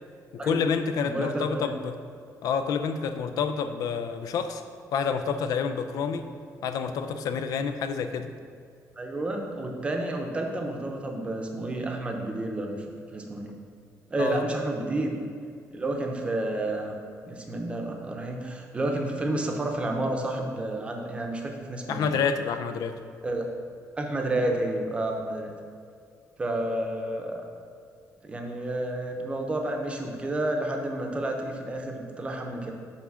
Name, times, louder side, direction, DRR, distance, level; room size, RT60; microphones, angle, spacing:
voice 1, 0.3-2.0 2.4-4.6 4.9-6.3 6.6-8.3 14.2-14.4 21.9-23.0, left 6 dB, 75° left, 8 dB, 0.5 m, -28 dB
voice 2, 1.0-1.7 9.0-12.8 13.1-13.5 14.1-15.2 15.7-17.0 17.3-22.1 23.2-23.5 24.0-25.5 26.4-27.4 28.2-32.7, right 1 dB, 20° right, 2 dB, 0.7 m, -30 dB
5.9 x 4.9 x 6.3 m, 2.3 s
cardioid pair, 175°, 6 cm